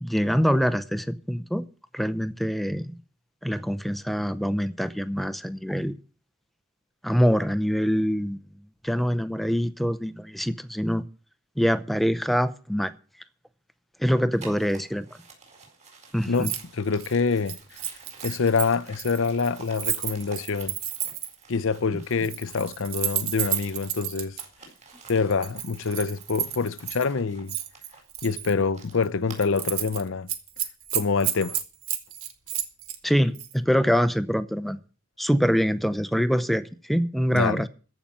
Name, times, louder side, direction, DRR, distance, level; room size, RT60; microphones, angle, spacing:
voice 1, 0.0-1.6 1.9-2.9 3.4-5.9 7.0-8.4 8.8-11.0 11.6-12.9 14.0-15.1 16.1-16.5 33.0-34.8 35.2-37.7, equal, ahead, 0.6 m, -24 dB
sound 1, 14.3-22.8 23.1-29.9, right 4 dB, 35° right, 4.4 m, -50 dB
voice 2, 16.3-17.6 18.2-20.8 21.5-24.4 25.1-27.6 28.2-30.3 30.9-31.6 37.3-37.6, left 4 dB, 70° left, 0.6 m, -26 dB
Keys jangling, 16.3-16.6 16.9-21.4 22.1-24.4 25.1-27.1 27.5-28.5 28.9-29.1 29.4-30.0 30.3-33.0 33.3-33.5, right 11 dB, 85° right, 1.6 m, -31 dB
14.5 x 5.7 x 8.7 m
head